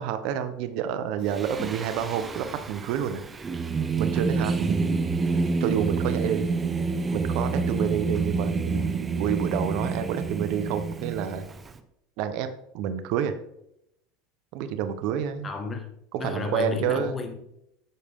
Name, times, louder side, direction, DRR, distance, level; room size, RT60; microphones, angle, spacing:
voice 1, 0.0-3.2 4.0-5.1 5.6-6.5 7.1-11.4 12.2-12.5 12.7-13.4 14.5-15.5 16.1-17.2, right 8 dB, 65° right, 9 dB, 0.9 m, -29 dB
Singing, 1.3-11.7, right 4 dB, 20° right, 0.9 m, -28 dB
voice 2, 15.4-15.9 16.2-17.4, left 4 dB, 20° left, 5 dB, 1.7 m, -32 dB
9.8 x 6.6 x 3.6 m, 0.78 s
supercardioid pair, 120°, 0 cm